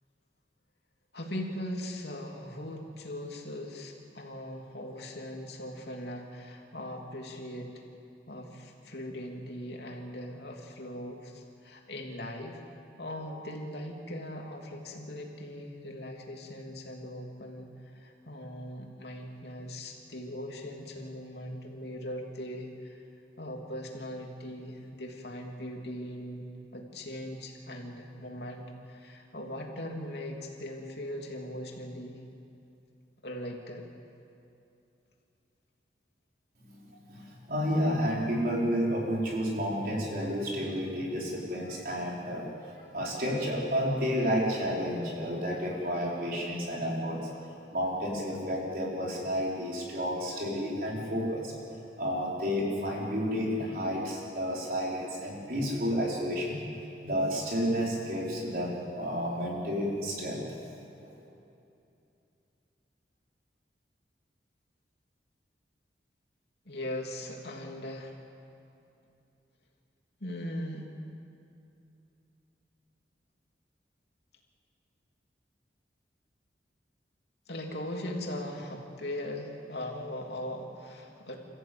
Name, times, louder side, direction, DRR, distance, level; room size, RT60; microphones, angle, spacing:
voice 1, 1.1-7.8 8.3-12.6 13.0-23.0 23.4-32.2 33.2-33.9 66.6-68.2 70.2-70.9 77.5-81.4, left 1 dB, 70° left, 0 dB, 3.0 m, -40 dB
voice 2, 36.8-42.5 42.9-47.2 47.7-51.5 52.0-56.6 57.0-60.6 61.0-61.1, equal, 50° right, -3 dB, 5.0 m, -31 dB
28.5 x 15.0 x 8.8 m, 2.7 s
head